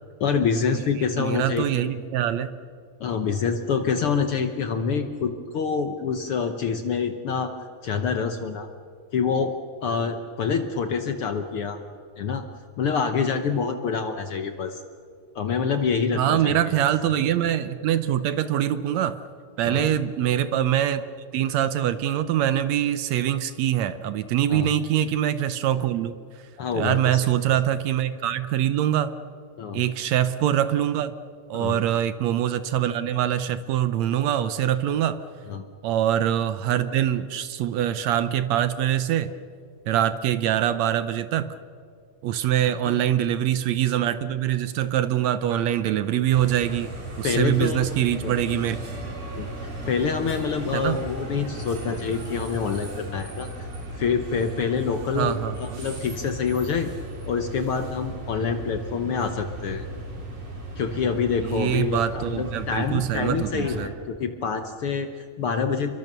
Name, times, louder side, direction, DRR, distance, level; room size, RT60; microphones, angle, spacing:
voice 1, 0.2-2.0 3.0-7.5 7.8-8.7 9.1-9.5 9.8-11.8 12.2-12.4 12.8-14.8 15.3-16.6 19.6-19.9 24.5-24.7 26.6-27.3 29.6-29.8 31.5-31.8 35.5-35.6 42.8-43.1 47.2-48.3 49.3-53.7 54.0-56.9 57.3-59.8 60.8-65.9, left 6 dB, 65° left, 7 dB, 1.5 m, -26 dB
voice 2, 1.1-2.6 16.2-19.2 19.6-21.1 21.3-26.1 26.7-29.1 29.7-31.1 31.5-35.2 35.8-39.3 39.9-41.5 42.2-46.9 47.2-48.8 50.7-51.0 55.1-55.8 61.4-63.9, right 11 dB, 70° right, 12 dB, 1.9 m, -24 dB
sound 1, 46.3-63.9, right 1 dB, 55° right, 5.3 m, -36 dB
29.5 x 23.0 x 6.8 m, 2.3 s
omnidirectional pair, 3.5 m